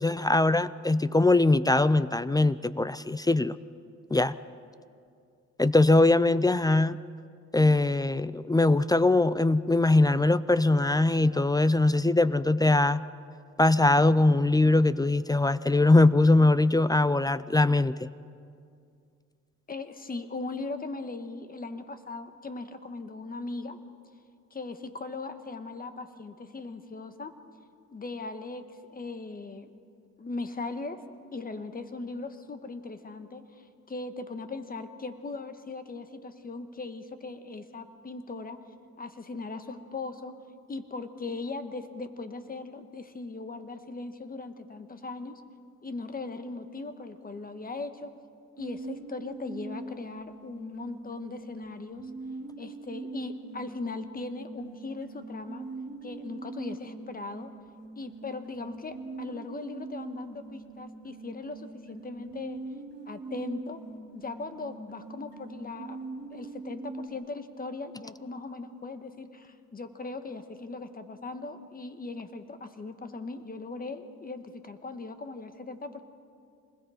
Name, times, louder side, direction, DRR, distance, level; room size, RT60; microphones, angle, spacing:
voice 1, 0.0-3.6 4.1-4.4 5.6-7.0 7.5-13.0 13.6-18.1, left 2 dB, 15° left, 16 dB, 0.4 m, -22 dB
voice 2, 19.7-23.8 24.5-27.3 27.9-29.7 30.2-31.0 31.3-38.6 39.0-40.3 40.7-45.4 45.8-48.1 48.6-52.1 52.6-55.7 56.0-57.5 57.9-62.6 63.1-63.8 64.1-66.0 66.3-76.0, left 3 dB, 30° left, 9 dB, 1.5 m, -39 dB
sound 1, 48.6-67.1, right 3 dB, 35° right, 4.0 m, -42 dB
26.0 x 20.5 x 5.0 m, 2.3 s
cardioid pair, 90°, 30 cm